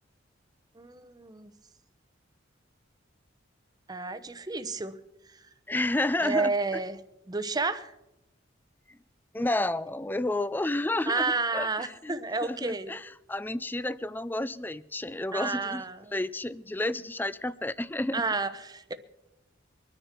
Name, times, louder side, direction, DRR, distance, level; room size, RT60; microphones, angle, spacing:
voice 1, 0.8-1.5 3.9-5.0 6.2-7.0 7.3-7.9 11.1-12.9 15.3-16.1 18.1-18.9, right 3 dB, 20° right, 11 dB, 0.8 m, -31 dB
voice 2, 5.7-6.5 9.3-15.8 16.1-18.2, left 2 dB, 10° left, 17 dB, 0.4 m, -31 dB
24.0 x 10.0 x 4.5 m, 0.89 s
head